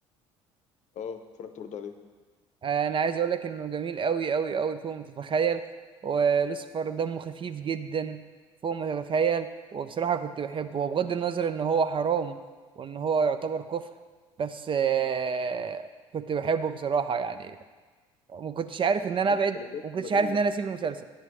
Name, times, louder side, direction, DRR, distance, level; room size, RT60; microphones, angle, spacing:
voice 1, 0.9-2.0 19.2-20.4 20.8-20.9, left 7 dB, 50° left, 8 dB, 0.7 m, -39 dB
voice 2, 2.6-5.6 6.0-8.2 8.6-12.4 12.8-13.9 14.4-15.9 16.1-17.6 18.3-19.6 19.8-21.0, right 6 dB, 35° right, 11 dB, 0.4 m, -28 dB
9.7 x 7.6 x 3.2 m, 1.4 s
hypercardioid pair, 60°, 15 cm